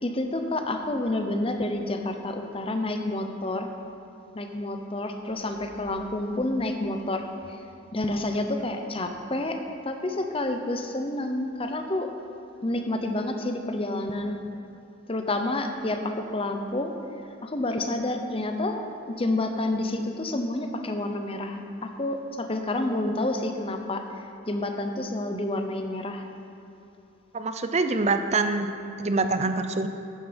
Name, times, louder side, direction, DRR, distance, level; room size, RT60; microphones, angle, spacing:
voice 1, 0.0-3.7 4.3-7.6 7.9-12.1 12.6-14.4 15.1-16.9 17.4-26.2, left 1 dB, 30° left, 5 dB, 0.8 m, -29 dB
voice 2, 27.3-29.9, right 3 dB, 35° right, 8 dB, 0.6 m, -25 dB
12.0 x 9.2 x 5.2 m, 2.9 s
head